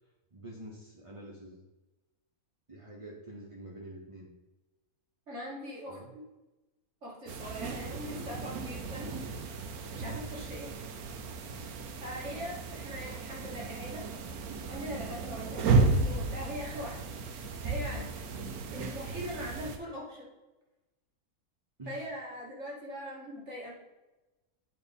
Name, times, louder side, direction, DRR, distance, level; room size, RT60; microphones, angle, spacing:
voice 1, 0.3-1.6 2.7-4.3 5.9-6.1 9.9-10.2 14.8-15.0 17.9-18.1 21.8-22.2, right 1 dB, 25° right, -2 dB, 0.9 m, -47 dB
voice 2, 5.3-6.2 7.0-9.2 9.9-10.7 12.0-14.1 14.7-17.0 17.6-18.0 18.7-20.3 21.9-23.7, equal, 50° right, -4 dB, 2.6 m, -41 dB
sound 1, 7.3-19.8, right 3 dB, 80° right, 1.3 m, -33 dB
8.7 x 4.3 x 5.3 m, 1.1 s
omnidirectional pair, 1.6 m